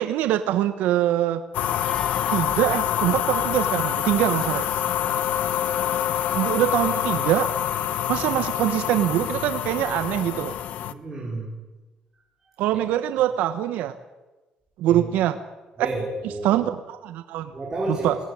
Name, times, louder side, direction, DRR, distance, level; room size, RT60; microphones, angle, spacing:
voice 1, 0.0-1.4 2.3-4.7 6.3-7.5 8.1-10.5 12.6-13.9 14.8-15.4 15.8-15.9 16.4-17.5 17.9-18.2, right 12 dB, 80° right, 9 dB, 1.2 m, -23 dB
sound 1, 1.5-10.9, left 10 dB, 65° left, 1.1 m, -26 dB
Meow, 1.6-2.5, left 4 dB, 40° left, 4.3 m, -42 dB
voice 2, 10.8-11.6 12.7-12.8 14.9-15.1 15.8-16.6 17.5-18.2, right 1 dB, 15° right, -4 dB, 5.0 m, -32 dB
22.0 x 18.5 x 10.0 m, 1.2 s
cardioid pair, 135°, 3 cm